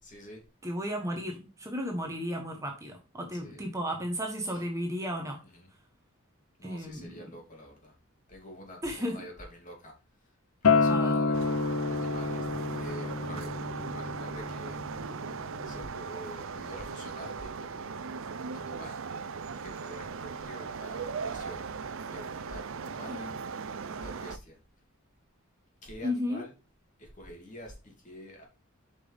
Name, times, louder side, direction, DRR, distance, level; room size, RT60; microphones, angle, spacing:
voice 1, 0.0-0.4 3.3-3.6 4.5-4.6 5.4-5.7 6.6-7.9 8.3-9.9 10.6-12.5 12.8-13.5 13.8-14.8 15.6-18.2 18.5-19.0 19.6-21.6 22.1-23.3 23.8-24.6 25.8-26.5 27.0-28.4, equal, 35° left, 2.9 m, -47 dB
voice 2, 0.6-5.4 6.6-7.1 8.8-9.2 10.9-11.2 23.1-23.3 26.0-26.4, equal, 15° right, 1.1 m, -34 dB
Acoustic guitar, 10.6-15.8, left 4 dB, 80° left, 0.9 m, -29 dB
sound 1, 11.3-24.4, right 5 dB, 65° right, 0.5 m, -38 dB
7.8 x 5.3 x 3.5 m
head